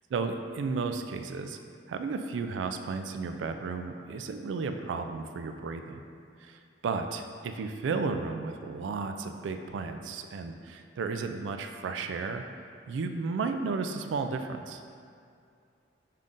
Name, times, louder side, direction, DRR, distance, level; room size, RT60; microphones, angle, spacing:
voice 1, 0.1-1.6 1.9-6.0 6.4-12.5 12.9-14.8, right 4 dB, 85° right, 7 dB, 0.3 m, -33 dB
5.4 x 2.5 x 3.6 m, 2.3 s
head